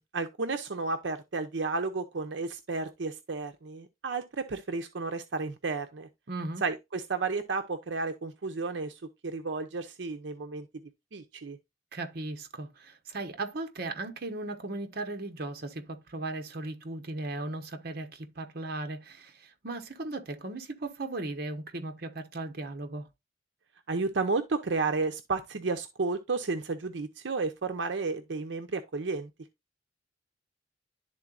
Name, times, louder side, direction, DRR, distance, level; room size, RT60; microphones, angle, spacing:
voice 1, 0.1-6.1 6.6-10.7 11.1-11.6 23.9-29.3, right 3 dB, 85° right, 0.7 m, -32 dB
voice 2, 6.3-6.6 11.9-23.1, right 2 dB, 60° right, 1.0 m, -37 dB
11.5 x 3.8 x 2.4 m
head